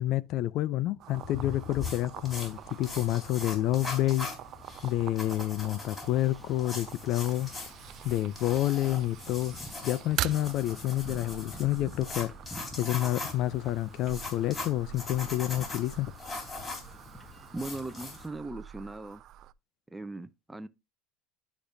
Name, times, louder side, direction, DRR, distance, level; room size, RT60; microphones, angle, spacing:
voice 1, 0.0-4.3 4.8-7.5 8.0-12.3 12.8-16.1, left 14 dB, 60° left, 0.4 m, -29 dB
sound 1, 1.0-19.5, right 13 dB, 55° right, 0.3 m, -44 dB
sound 2, 1.1-18.3, left 3 dB, 25° left, 3.7 m, -41 dB
Wind / Ocean, 2.5-18.3, left 1 dB, 10° left, 1.0 m, -52 dB
voice 2, 17.5-19.2 19.9-20.7, right 2 dB, 10° right, 0.6 m, -39 dB
11.5 x 5.2 x 2.6 m
supercardioid pair, 95°, 0 cm